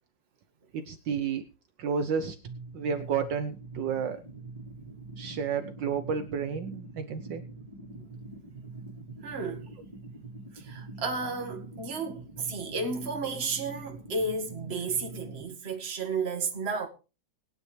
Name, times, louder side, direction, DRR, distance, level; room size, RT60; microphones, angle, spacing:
voice 1, 0.7-1.4 1.8-2.4 2.7-4.2 5.2-7.4, right 6 dB, 70° right, 1.5 m, -31 dB
sound 1, 2.4-15.4, right 3 dB, 15° right, 3.7 m, -44 dB
voice 2, 9.2-9.7 10.5-16.9, right 4 dB, 30° right, 2.0 m, -33 dB
20.5 x 9.5 x 3.3 m
omnidirectional pair, 2.2 m